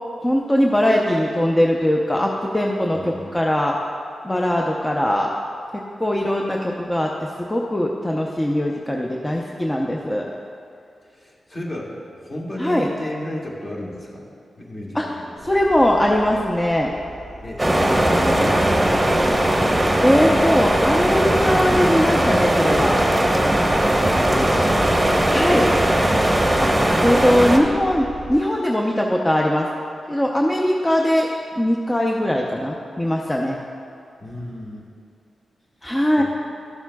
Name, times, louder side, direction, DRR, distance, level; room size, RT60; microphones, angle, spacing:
voice 1, 0.2-3.8 4.2-5.3 5.7-10.3 12.6-12.9 14.9-15.0 15.4-16.9 20.0-23.0 25.3-25.7 26.6-29.7 30.1-31.3 31.6-33.6 35.8-36.2, equal, 15° left, -1 dB, 0.6 m, -20 dB
voice 2, 2.9-3.4 11.1-14.3 14.6-15.5 16.3-16.4 17.4-19.4 24.0-24.8 34.2-34.9 35.8-36.2, left 1 dB, 40° left, -3 dB, 1.7 m, -34 dB
sound 1, 15.4-28.3, equal, 90° left, 1.8 m, -39 dB
sound 2, 17.6-27.6, right 1 dB, 15° right, 0.9 m, -18 dB
13.0 x 7.2 x 2.3 m, 2.4 s
cardioid pair, 70°, 0 cm